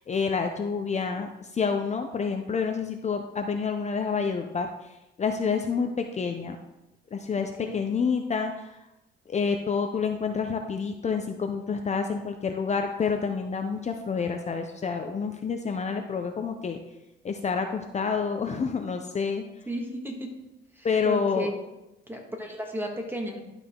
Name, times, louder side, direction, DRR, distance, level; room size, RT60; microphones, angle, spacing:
voice 1, 0.0-4.9 5.2-6.6 7.1-8.7 9.3-16.8 17.2-19.4 20.8-21.5, left 5 dB, 35° left, 5 dB, 0.6 m, -28 dB
voice 2, 19.6-20.3 20.7-21.5 22.1-23.4, equal, 10° right, 1 dB, 1.7 m, -33 dB
11.5 x 4.9 x 3.7 m, 0.96 s
cardioid pair, 90°, 20 cm